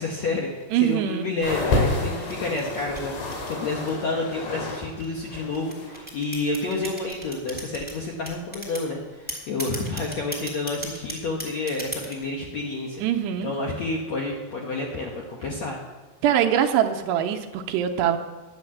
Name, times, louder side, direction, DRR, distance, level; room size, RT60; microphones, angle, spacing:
voice 1, 0.0-13.0 13.4-15.8, left 3 dB, 65° left, -1 dB, 1.8 m, -29 dB
voice 2, 0.7-1.3 13.0-13.5 16.2-18.2, right 10 dB, 80° right, 6 dB, 2.7 m, -23 dB
sound 1, 1.4-4.9 5.1-6.0 6.8-6.9, left 2 dB, 85° left, 4.8 m, -29 dB
sound 2, 2.0-4.1 4.8-7.9 8.3-8.9 9.3-12.3, right 1 dB, 5° left, 1.6 m, -36 dB
10.5 x 9.5 x 7.2 m, 1.2 s
omnidirectional pair, 4.9 m